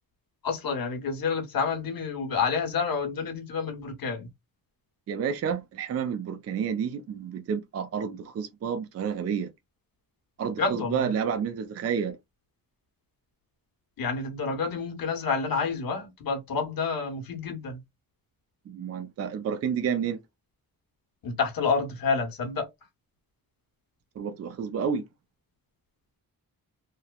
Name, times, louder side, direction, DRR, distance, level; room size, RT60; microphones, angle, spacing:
voice 1, 0.4-4.3 10.6-11.1 14.0-17.8 21.2-22.7, left 5 dB, 70° left, 1.0 m, -29 dB
voice 2, 5.1-9.5 10.4-12.2 18.7-20.2 24.2-25.1, right 7 dB, 45° right, 0.4 m, -30 dB
3.0 x 2.0 x 2.2 m
wide cardioid pair, 115°, 36 cm